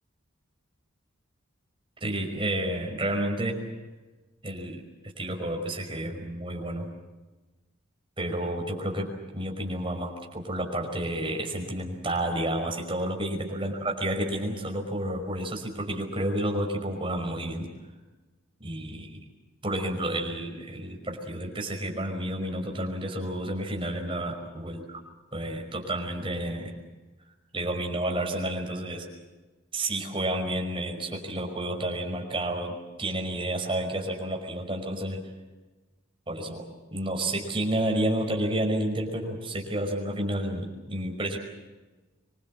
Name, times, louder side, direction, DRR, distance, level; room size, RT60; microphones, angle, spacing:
voice 1, 2.0-3.6 4.4-4.8 5.2-6.9 8.2-17.7 18.6-19.2 19.6-24.8 25.3-26.7 27.5-29.1 29.7-35.2 36.3-36.6 36.9-41.4, right 1 dB, 25° right, 2 dB, 5.4 m, -30 dB
25.5 x 23.0 x 7.8 m, 1.2 s
head